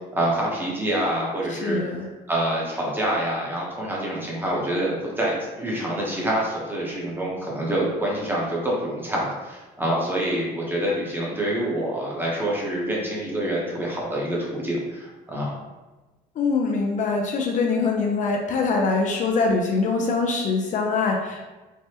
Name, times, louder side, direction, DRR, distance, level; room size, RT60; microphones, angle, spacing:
voice 1, 0.1-1.8 2.3-15.5, right 1 dB, 10° right, -4 dB, 0.8 m, -26 dB
voice 2, 1.5-2.1 16.4-21.5, left 4 dB, 50° left, 2 dB, 0.4 m, -23 dB
3.3 x 2.0 x 2.8 m, 1.2 s
cardioid pair, 110°, 17 cm